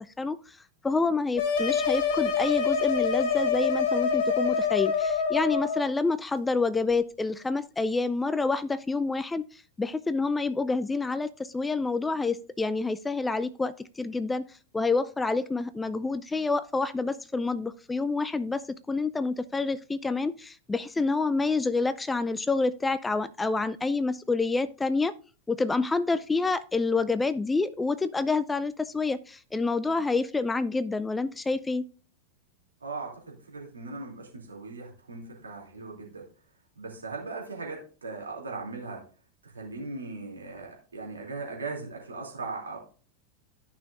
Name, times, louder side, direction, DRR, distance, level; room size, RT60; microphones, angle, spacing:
voice 1, 0.2-0.6 0.8-14.4 14.7-25.2 25.5-31.9, left 3 dB, 10° left, 15 dB, 0.4 m, -28 dB
sound 1, 1.4-5.8, left 6 dB, 50° left, 2.6 m, -26 dB
voice 2, 32.8-36.2 36.8-39.0 39.4-42.8, right 3 dB, 80° right, -1 dB, 2.7 m, -38 dB
14.0 x 5.8 x 2.5 m, 0.38 s
figure-of-eight pair, 90°, 0 cm